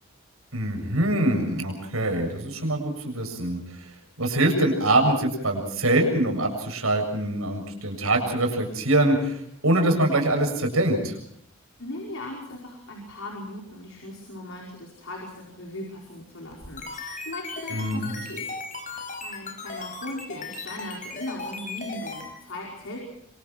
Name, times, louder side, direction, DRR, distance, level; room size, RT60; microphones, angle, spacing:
voice 1, 0.5-3.9 4.2-11.2 17.7-18.1, right 1 dB, 85° right, 3 dB, 7.3 m, -24 dB
voice 2, 11.8-18.5 18.8-23.0, left 1 dB, 70° left, -1 dB, 5.3 m, -38 dB
sound 1, 16.5-22.3, left 3 dB, 40° left, 5.4 m, -36 dB
27.0 x 26.5 x 4.5 m, 0.70 s
head